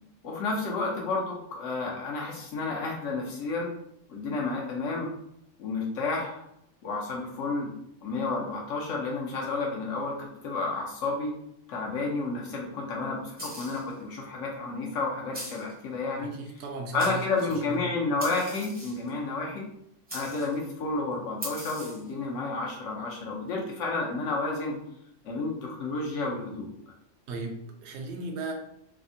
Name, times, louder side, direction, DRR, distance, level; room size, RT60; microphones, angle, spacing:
voice 1, 0.2-3.7 4.1-5.1 5.6-6.4 6.8-7.7 8.0-11.3 11.7-16.3 16.9-19.7 20.1-24.7 25.2-26.7, left 3 dB, 75° left, -2 dB, 1.0 m, -31 dB
sound 1, 13.4-13.9 15.3-15.7 16.6-16.7 17.0-17.6 18.2-19.1 20.1-20.6 21.4-22.1, equal, 10° right, 0.5 m, -40 dB
voice 2, 16.2-17.2 17.5-17.8 27.3-28.5, right 3 dB, 65° right, 3 dB, 0.8 m, -36 dB
3.4 x 2.1 x 2.5 m, 0.75 s
omnidirectional pair, 1.3 m